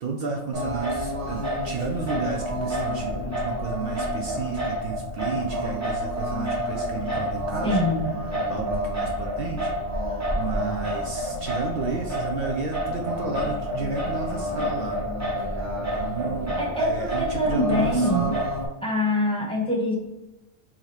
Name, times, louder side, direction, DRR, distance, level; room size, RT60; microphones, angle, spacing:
voice 1, 0.0-7.8 8.3-9.7 10.0-15.0 15.8-18.5, right 4 dB, 60° right, 2 dB, 0.8 m, -32 dB
Singing, 0.5-18.7, equal, 15° right, 1.0 m, -29 dB
voice 2, 7.6-8.1 16.6-18.3 18.8-19.9, left 1 dB, 5° left, -3 dB, 1.1 m, -24 dB
5.7 x 2.9 x 3.2 m, 0.98 s
omnidirectional pair, 1.2 m